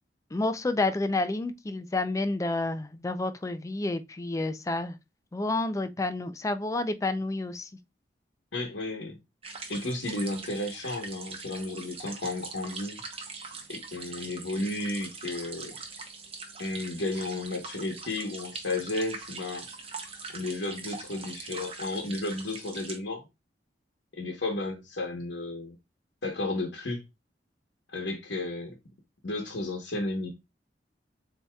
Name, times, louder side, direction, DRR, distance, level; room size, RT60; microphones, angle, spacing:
voice 1, 0.3-4.9 5.3-7.7, left 2 dB, 20° left, 0.4 m, -29 dB
voice 2, 8.5-9.2 9.7-13.0 13.7-15.8 16.6-19.7 20.3-23.3 24.1-25.8 26.2-27.0 27.9-28.7 29.2-30.3, left 2 dB, 85° left, 1.0 m, -33 dB
sound 1, 9.4-23.0, right 4 dB, 35° right, 0.8 m, -42 dB
7.3 x 2.8 x 2.3 m
head